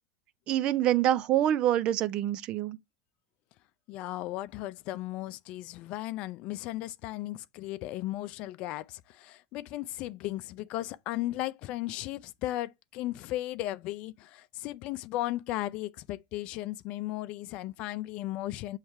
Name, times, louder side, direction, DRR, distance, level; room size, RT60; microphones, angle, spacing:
voice 1, 0.5-2.8, right 12 dB, 50° right, 0.6 m, -26 dB
voice 2, 3.9-18.8, left 16 dB, 55° left, 0.5 m, -36 dB
7.1 x 3.3 x 4.5 m
hypercardioid pair, 100°, 2 cm